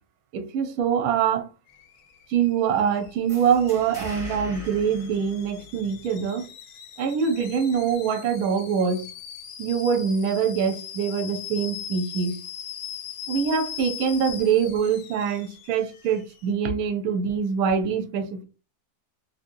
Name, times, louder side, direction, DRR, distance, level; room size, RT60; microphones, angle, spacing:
voice 1, 0.3-1.5 2.3-6.5 7.0-9.1 9.6-12.4 13.3-18.4, right 7 dB, 70° right, 1.0 m, -24 dB
Alarm / Boiling, 1.7-16.5, left 9 dB, 70° left, 1.0 m, -41 dB
sound 1, 3.3-6.0, left 1 dB, 25° right, 0.9 m, -40 dB
2.8 x 2.7 x 2.5 m
omnidirectional pair, 1.7 m